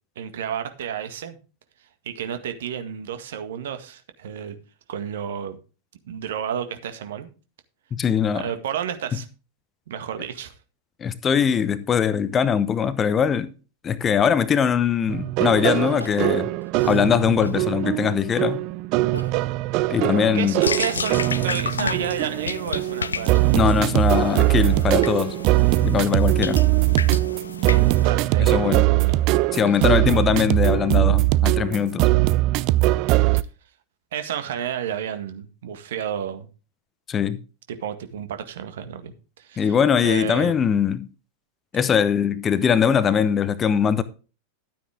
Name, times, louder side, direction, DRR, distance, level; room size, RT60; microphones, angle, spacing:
voice 1, 0.2-1.4 2.1-4.6 4.9-5.6 6.1-7.3 8.3-9.3 9.9-10.5 20.3-23.6 28.0-29.1 29.7-29.9 34.1-36.5 37.7-39.8 40.0-40.5, right 9 dB, 60° right, 1.8 m, -31 dB
voice 2, 7.9-8.5 11.0-13.5 13.8-16.5 16.8-18.6 19.9-20.6 23.5-25.3 25.8-26.6 28.4-28.8 29.5-32.1 37.1-37.4 39.6-41.1 41.7-44.0, left 7 dB, 25° left, 0.9 m, -21 dB
Crying sobbing, 14.6-14.7 16.0-17.7 18.2-18.3 19.0-19.7 20.0-21.1 21.5-25.5 26.2-28.3 28.9-29.7, right 1 dB, 90° right, 1.1 m, -41 dB
sound 1, 15.1-33.4, right 18 dB, 40° right, 0.5 m, -21 dB
sound 2, 20.6-28.1, left 5 dB, 75° left, 0.6 m, -31 dB
12.5 x 9.2 x 3.5 m
figure-of-eight pair, 90°, 0 cm